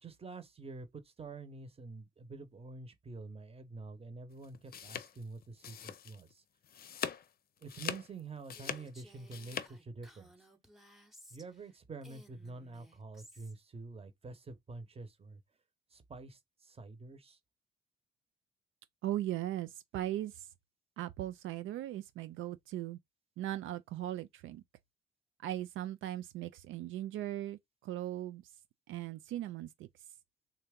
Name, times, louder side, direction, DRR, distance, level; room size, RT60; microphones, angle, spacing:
voice 1, 0.0-6.4 7.6-10.5 11.3-15.4 15.9-17.4, right 3 dB, 30° right, 0.9 m, -47 dB
Apple slicing, 4.4-6.3 6.6-7.3 7.6-9.7, left 8 dB, 50° left, 0.6 m, -41 dB
Female speech woman speaking, 8.5-11.7 12.0-13.5, right 1 dB, ahead, 0.8 m, -59 dB
voice 2, 19.0-20.5 21.0-23.0 23.4-24.6 25.4-28.4 28.9-29.9, right 13 dB, 80° right, 0.4 m, -38 dB
3.4 x 2.8 x 3.5 m
cardioid pair, 90°, 20 cm